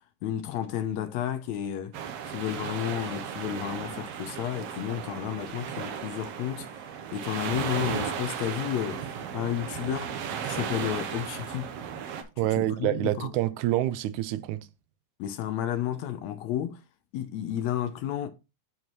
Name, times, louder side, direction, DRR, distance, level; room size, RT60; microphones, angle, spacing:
voice 1, 0.2-1.9 2.3-9.1 9.3-10.2 10.4-11.7 12.6-13.3 15.2-16.8 17.1-18.3, left 11 dB, 75° left, 1.9 m, -32 dB
sound 1, 1.9-12.2, right 8 dB, 65° right, 1.8 m, -35 dB
voice 2, 12.4-14.7, right 15 dB, 90° right, 2.0 m, -27 dB
10.5 x 4.6 x 3.1 m
omnidirectional pair, 3.4 m